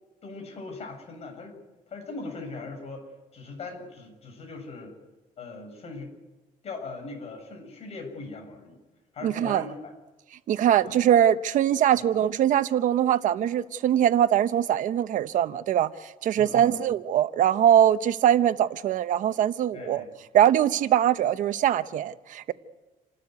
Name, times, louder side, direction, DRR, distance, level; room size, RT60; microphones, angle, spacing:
voice 1, 0.2-1.6 1.9-3.1 3.3-5.0 5.4-6.1 6.6-8.8 9.1-9.9 10.8-11.0 11.9-12.1 16.4-16.7 19.7-20.1, left 3 dB, 45° left, 7.7 m, -40 dB
voice 2, 9.2-9.6 10.5-20.0 20.3-22.5, right 10 dB, 65° right, 0.9 m, -22 dB
28.5 x 13.0 x 9.6 m
cardioid pair, 140°, 15 cm